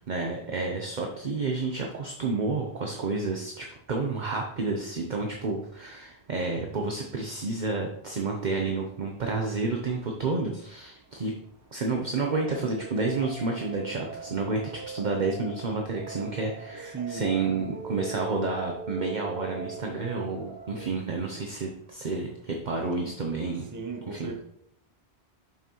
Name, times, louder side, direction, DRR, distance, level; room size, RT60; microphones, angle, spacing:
voice 1, 0.1-11.3 11.7-23.7 24.1-24.3, right 3 dB, 50° right, 0.8 m, -30 dB
sound 1, 12.3-20.9, right 3 dB, 70° right, 1.2 m, -41 dB
voice 2, 16.9-17.2 23.7-24.4, right 5 dB, 20° right, 0.8 m, -35 dB
7.0 x 5.7 x 3.0 m
omnidirectional pair, 1.1 m